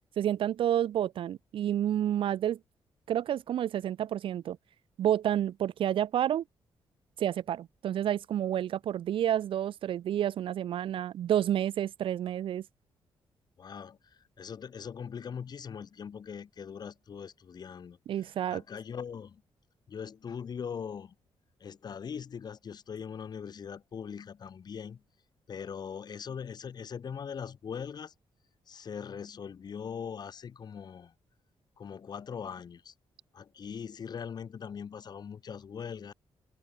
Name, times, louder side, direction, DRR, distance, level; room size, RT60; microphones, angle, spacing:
voice 1, 0.2-2.6 3.1-4.6 5.0-6.4 7.2-12.6 18.1-18.6, right 10 dB, 65° right, 0.5 m, -29 dB
voice 2, 13.6-18.0 18.5-19.4 19.9-21.1 21.6-25.0 25.5-28.1 28.7-31.1 31.8-32.9 33.3-36.1, left 7 dB, 45° left, 4.8 m, -41 dB
wide cardioid pair, 145°, 10 cm